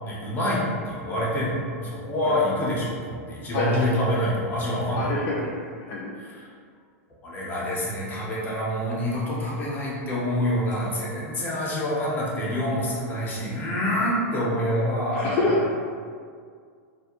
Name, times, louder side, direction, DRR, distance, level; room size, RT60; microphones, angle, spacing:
voice 1, 0.0-5.3 6.2-6.5 7.2-15.3, equal, 20° left, -6 dB, 0.7 m, -26 dB
voice 2, 5.0-5.5 5.9-6.1 15.1-15.7, left 2 dB, 45° left, -5 dB, 0.4 m, -26 dB
2.4 x 2.0 x 2.9 m, 2.1 s
hypercardioid pair, 130°, 8 cm